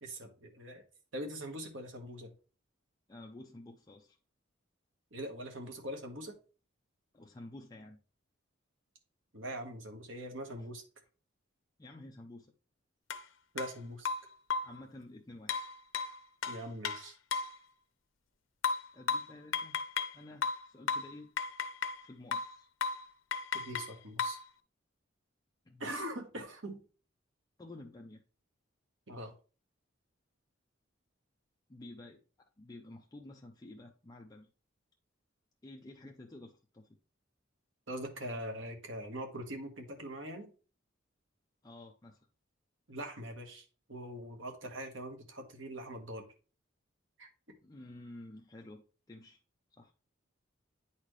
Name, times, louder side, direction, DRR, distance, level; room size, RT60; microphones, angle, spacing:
voice 1, 0.0-0.8 1.1-2.3 5.1-6.4 9.3-10.8 13.5-14.1 16.5-17.1 23.5-24.4 25.8-26.8 29.1-29.3 37.9-40.5 42.9-46.2 47.2-47.3, right 1 dB, 75° right, 4 dB, 1.5 m, -42 dB
voice 2, 3.1-4.2 7.1-8.0 11.8-12.5 14.6-15.6 18.9-19.8 20.1-21.3 21.8-22.7 25.7-25.8 27.6-28.2 31.7-34.5 35.6-37.0 41.6-42.3 47.6-49.4 49.8-49.9, left 2 dB, 20° left, 1 dB, 0.6 m, -51 dB
sound 1, 13.1-13.2 13.6-13.7 14.1-14.8 15.5-17.6 18.6-20.2 20.4-22.0 22.3-22.6 22.8-23.1 23.3-24.4, left 5 dB, 80° left, 0.6 m, -35 dB
9.4 x 4.2 x 3.2 m, 0.36 s
head